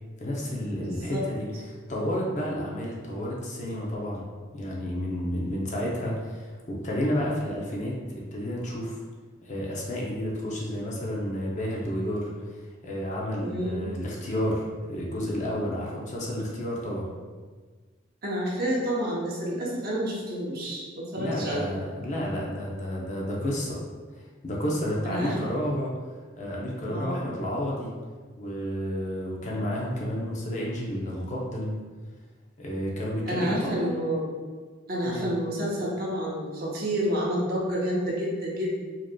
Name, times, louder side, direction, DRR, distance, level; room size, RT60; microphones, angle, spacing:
voice 1, 0.2-1.5 1.9-4.2 4.5-9.0 9.4-12.6 12.8-17.1 21.2-23.8 24.4-25.9 26.4-27.9 28.4-31.7 32.6-33.9 35.0-35.3, equal, 40° left, -4 dB, 0.6 m, -31 dB
voice 2, 0.8-1.2 13.4-13.9 18.2-21.7 25.0-25.3 26.9-27.2 33.3-34.3 34.9-38.7, equal, 50° right, -5 dB, 0.9 m, -29 dB
4.9 x 2.9 x 2.2 m, 1.5 s
head